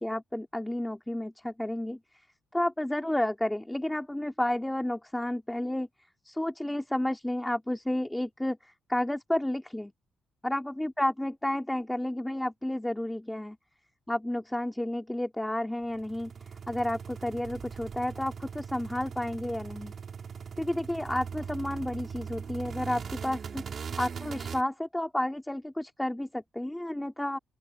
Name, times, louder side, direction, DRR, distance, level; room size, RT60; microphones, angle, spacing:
voice 1, 0.0-2.0 2.5-5.9 6.2-9.9 10.4-13.6 14.1-16.3 16.7-19.9 20.6-27.4, left 1 dB, 5° left, 4.0 m, -31 dB
sound 1, 15.8-24.6, right 6 dB, 50° right, 4.7 m, -40 dB
open air
cardioid pair, 90°, 0 cm